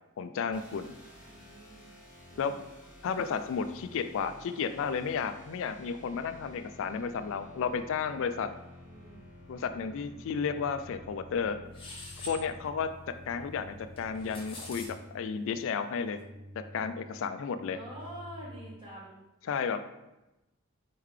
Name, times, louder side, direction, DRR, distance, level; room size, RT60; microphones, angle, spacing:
voice 1, 0.2-1.0 2.4-2.5 3.0-8.5 9.5-11.6 12.2-16.2 16.6-17.8 19.5-20.0, left 6 dB, 65° left, 10 dB, 0.3 m, -33 dB
sound 1, 0.5-14.8, left 1 dB, 5° right, 1.3 m, -51 dB
voice 2, 1.2-2.0 2.3-2.7 3.6-4.1 8.8-9.4 17.7-19.2, equal, 25° right, -6 dB, 1.3 m, -48 dB
sound 2, 8.8-18.8, equal, 50° right, 0.5 m, -53 dB
sound 3, 11.7-12.4 14.0-14.9, left 2 dB, 25° left, 1.1 m, -44 dB
4.5 x 3.7 x 3.2 m, 0.98 s
head